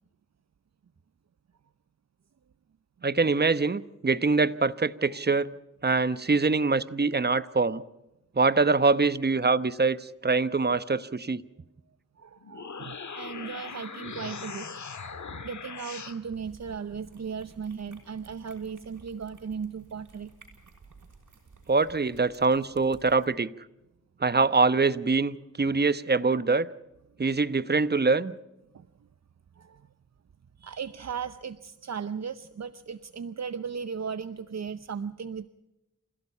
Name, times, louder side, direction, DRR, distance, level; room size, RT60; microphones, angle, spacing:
voice 1, 3.0-5.5 5.8-7.8 8.4-11.4 21.7-23.5 24.2-26.7 27.2-28.3, right 4 dB, 35° right, 0.9 m, -24 dB
voice 2, 12.2-20.3 28.7-28.9 29.6-29.9 30.6-35.5, right 6 dB, 60° right, 0.7 m, -37 dB
sound 1, 12.4-16.2, left 5 dB, 65° left, 1.9 m, -40 dB
sound 2, 16.3-23.3, right 4 dB, 80° right, 5.9 m, -55 dB
28.5 x 16.5 x 5.6 m
cardioid pair, 55°, 31 cm